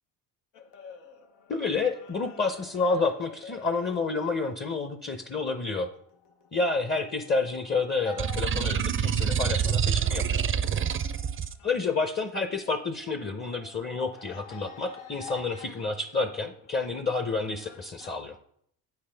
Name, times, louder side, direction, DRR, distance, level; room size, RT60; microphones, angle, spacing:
sound 1, 0.5-10.3 10.6-18.2, left 5 dB, 85° left, 0.9 m, -50 dB
voice 1, 1.5-5.9 6.5-10.4 11.6-18.4, left 4 dB, 25° left, 8 dB, 0.7 m, -29 dB
sound 2, 8.2-11.5, right 8 dB, 30° right, 0.5 m, -26 dB
8.2 x 5.8 x 3.4 m, 0.67 s
supercardioid pair, 75°, 42 cm